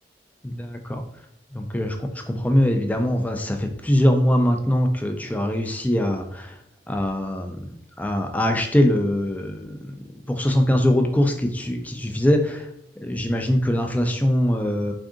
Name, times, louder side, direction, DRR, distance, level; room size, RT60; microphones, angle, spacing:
voice 1, 0.4-1.0 1.5-6.6 6.9-7.6 8.0-10.0 10.3-12.7 13.0-14.9, left 1 dB, 10° left, 4 dB, 0.3 m, -22 dB
3.6 x 2.5 x 3.6 m, 0.74 s
head